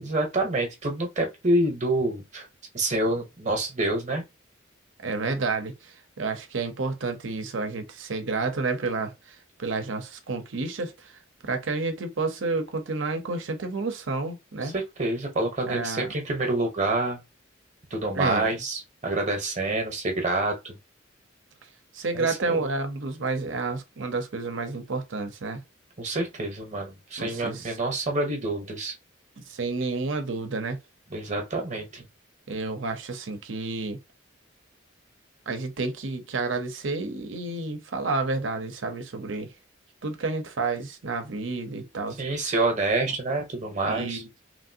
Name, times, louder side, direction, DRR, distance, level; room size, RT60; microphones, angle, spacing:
voice 1, 0.0-2.5 2.7-4.2 14.6-17.2 17.9-20.8 22.1-22.7 26.0-28.9 31.1-32.0 42.2-44.2, right 2 dB, 35° right, 0.9 m, -27 dB
voice 2, 5.0-9.1 9.6-11.1 11.4-14.7 15.7-16.1 18.1-18.5 21.9-25.6 27.2-27.8 29.4-30.8 32.5-34.0 35.5-39.5 40.0-42.5 43.0-43.1 43.9-44.3, right 3 dB, 70° right, 0.7 m, -30 dB
3.1 x 2.6 x 2.7 m
head